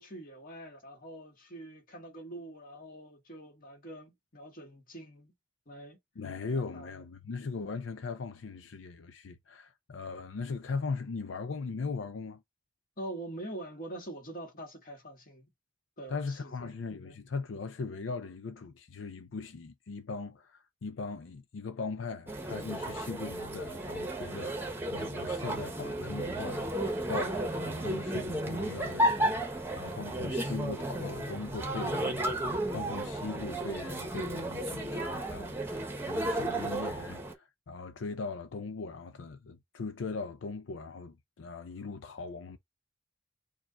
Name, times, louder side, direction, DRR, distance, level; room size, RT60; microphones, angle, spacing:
voice 1, 0.0-5.3 5.7-6.0 6.6-6.9 13.0-15.5 16.0-16.7 17.0-17.2, right 1 dB, 50° left, 1.8 m, -44 dB
voice 2, 6.2-12.4 16.1-42.6, left 4 dB, 85° left, 0.5 m, -39 dB
sound 1, 22.3-37.3, right 1 dB, 10° right, 1.0 m, -33 dB
4.8 x 2.4 x 4.0 m
head